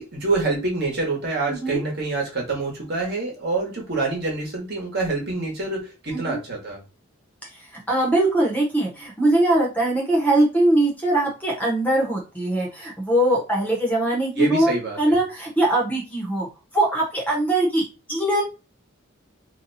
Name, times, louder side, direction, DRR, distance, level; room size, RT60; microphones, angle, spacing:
voice 1, 0.0-6.8 14.4-15.2, right 3 dB, 50° right, -1 dB, 1.2 m, -26 dB
voice 2, 1.5-1.8 6.1-6.4 7.5-16.5 16.7-17.8 18.1-18.4, right 1 dB, 10° left, -2 dB, 0.8 m, -21 dB
2.7 x 2.3 x 4.0 m, 0.30 s
head